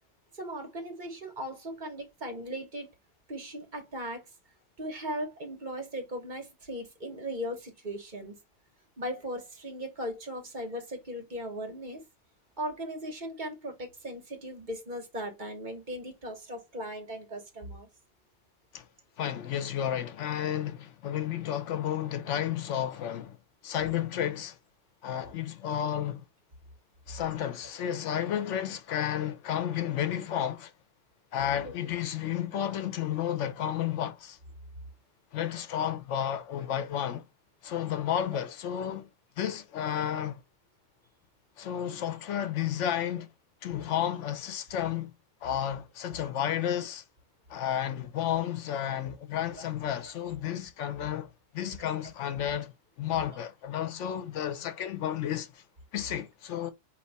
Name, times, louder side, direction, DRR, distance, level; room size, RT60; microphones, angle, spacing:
voice 1, 0.3-2.9 3.3-4.3 4.8-8.4 9.0-12.0 12.6-17.9 31.6-31.7 49.6-49.7, equal, 40° right, 1.3 m, -38 dB
voice 2, 19.2-23.4 23.6-24.6 25.0-26.2 27.1-30.7 31.3-34.4 35.3-37.2 37.6-39.1 39.4-40.4 41.6-43.3 43.6-45.1 45.4-47.0 47.5-52.7 53.0-55.6 55.9-56.7, left 10 dB, 90° left, 1.0 m, -32 dB
4.6 x 2.8 x 4.0 m
omnidirectional pair, 1.2 m